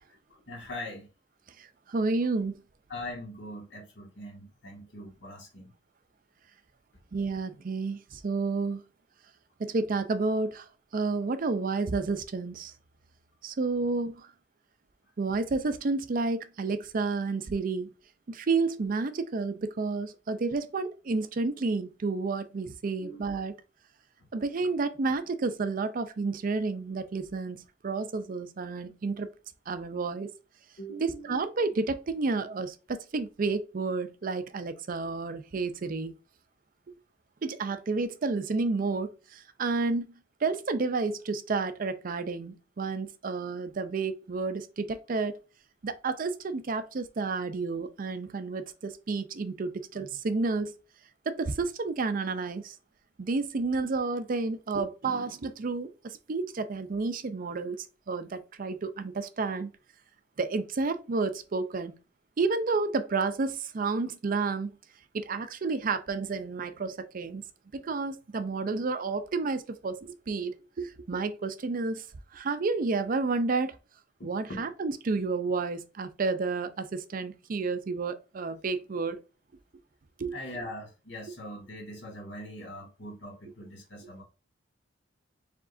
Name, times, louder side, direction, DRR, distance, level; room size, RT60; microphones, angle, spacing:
voice 1, 0.3-1.1 2.9-5.7 23.0-23.2 24.2-24.3 30.8-31.3 74.2-74.6 80.3-84.2, left 1 dB, 65° left, 1.6 m, -42 dB
voice 2, 1.6-2.6 7.1-8.8 9.6-12.7 13.4-14.3 15.2-17.9 18.3-23.5 24.3-29.3 29.7-30.3 31.0-36.1 37.4-40.1 40.4-45.4 45.8-50.7 51.3-52.7 53.2-59.7 60.4-62.0 62.4-64.7 65.1-67.4 67.7-72.1 72.3-73.8 74.2-79.2 80.2-80.4, right 3 dB, 45° right, 0.5 m, -30 dB
4.8 x 3.6 x 2.5 m
head